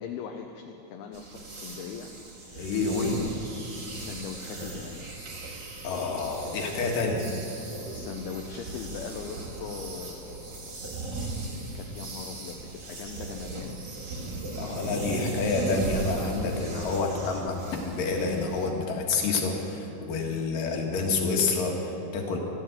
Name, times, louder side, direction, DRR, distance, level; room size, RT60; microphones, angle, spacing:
voice 1, 0.0-2.2 3.9-5.1 7.9-10.7 11.6-13.8, left 6 dB, 75° left, 3 dB, 2.6 m, -40 dB
sound 1, 1.1-18.7, right 2 dB, 35° right, 2.2 m, -37 dB
voice 2, 2.5-3.3 5.8-7.4 14.6-17.6 17.8-22.4, left 4 dB, 60° left, 1 dB, 3.2 m, -28 dB
14.5 x 12.5 x 8.0 m, 2.8 s
omnidirectional pair, 4.7 m